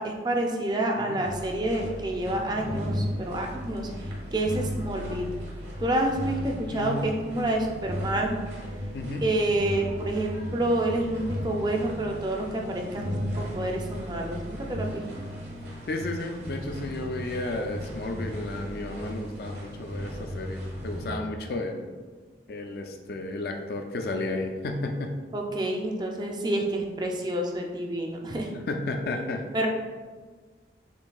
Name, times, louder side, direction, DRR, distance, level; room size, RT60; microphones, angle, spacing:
voice 1, 0.0-5.3 5.8-8.4 9.2-15.2 21.1-21.2 25.3-28.5 29.5-29.7, right 1 dB, 25° right, 1 dB, 0.5 m, -28 dB
sound 1, 1.2-21.1, equal, 75° right, 1.2 m, -36 dB
voice 2, 6.7-7.1 8.9-9.2 15.9-21.9 22.5-25.1 28.7-29.4, left 2 dB, 60° left, 4 dB, 0.4 m, -33 dB
6.7 x 2.7 x 2.3 m, 1.4 s
head